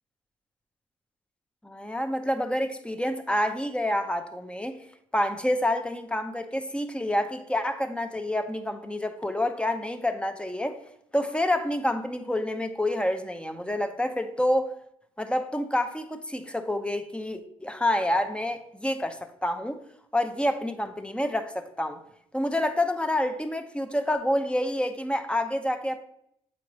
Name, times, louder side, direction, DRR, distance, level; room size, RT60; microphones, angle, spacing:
voice 1, 1.6-4.8 5.1-10.8 11.1-14.7 15.2-19.8 20.1-22.0 22.3-26.0, left 1 dB, 5° left, 0.7 m, -28 dB
7.3 x 4.5 x 3.0 m
supercardioid pair, 55°, 15 cm